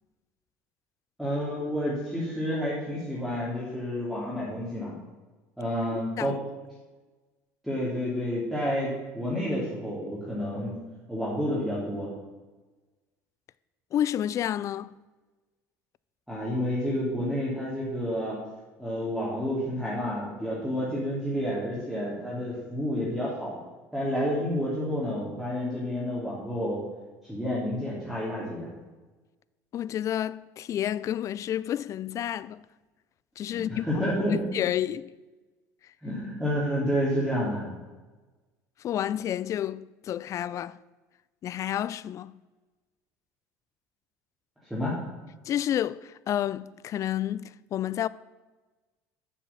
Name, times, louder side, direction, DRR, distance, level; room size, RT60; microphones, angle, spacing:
voice 1, 1.2-4.9 5.6-6.4 7.6-10.7 11.1-12.1 16.3-18.4 18.8-23.6 23.9-26.8 27.2-28.7 33.5-34.5 36.0-37.7 44.7-45.0, equal, ahead, 2.9 m, -30 dB
voice 2, 5.9-6.4 13.9-14.9 29.7-32.6 33.4-33.9 34.3-35.1 38.8-40.8 41.4-42.3 45.5-48.1, left 11 dB, 45° left, 0.3 m, -30 dB
7.4 x 6.9 x 7.1 m
supercardioid pair, 90°, 8 cm